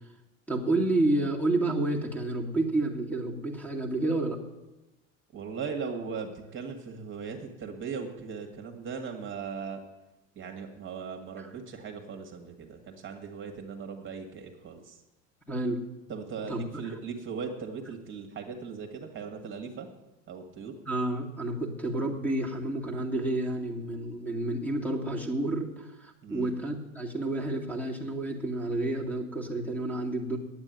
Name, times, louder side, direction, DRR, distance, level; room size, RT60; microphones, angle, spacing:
voice 1, 0.5-4.4 11.4-11.5 15.5-15.8 16.5-17.0 20.9-30.4, right 2 dB, 5° left, 2 dB, 2.1 m, -30 dB
voice 2, 5.3-9.8 10.4-15.0 16.1-19.9 20.3-20.8 26.2-26.5, right 5 dB, 30° right, 3 dB, 1.8 m, -38 dB
8.9 x 8.8 x 9.3 m, 1.1 s
hypercardioid pair, 95°, 39 cm